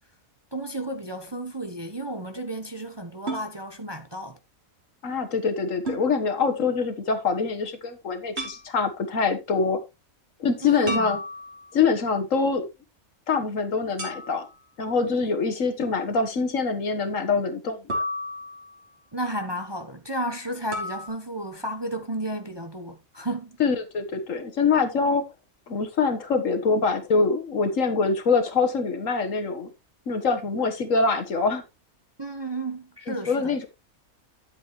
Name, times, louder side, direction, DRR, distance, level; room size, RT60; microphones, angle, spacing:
voice 1, 0.5-4.4 10.6-11.1 19.1-23.6 32.2-33.5, right 1 dB, 20° right, 0.9 m, -32 dB
sound 1, 3.3-3.5 5.9-6.1 8.4-8.6 10.9-11.8 14.0-14.6 17.9-18.8 20.7-21.1, equal, 45° right, 3.6 m, -32 dB
voice 2, 5.0-9.8 10.4-11.2 11.7-12.7 13.3-14.5 14.8-18.0 23.6-25.2 25.7-29.7 30.1-31.6 33.1-33.7, left 4 dB, 65° left, 1.7 m, -24 dB
10.5 x 8.2 x 3.1 m
omnidirectional pair, 1.5 m